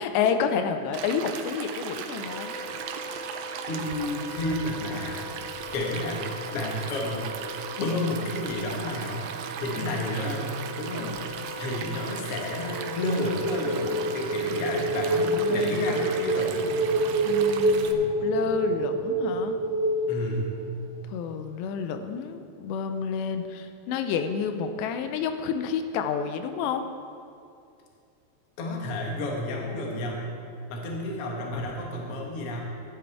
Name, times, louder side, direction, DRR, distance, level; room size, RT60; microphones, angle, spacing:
voice 1, 0.0-2.6 9.8-10.1 11.0-11.5 15.2-15.9 17.2-19.6 21.1-26.9, left 6 dB, 90° left, 7 dB, 2.9 m, -30 dB
Stream, 0.9-17.9, right 8 dB, 85° right, 2.8 m, -38 dB
Wind instrument woodwind instrument, 2.2-14.5, equal, 70° right, 2.5 m, -40 dB
voice 2, 3.7-5.2 5.7-7.3 7.8-16.8 20.1-20.5 28.6-30.3 30.7-32.6, left 1 dB, 55° left, -1 dB, 1.6 m, -31 dB
sound 1, 12.1-21.0, right 1 dB, 35° right, 2.8 m, -27 dB
15.5 x 10.5 x 3.5 m, 2.4 s
omnidirectional pair, 4.9 m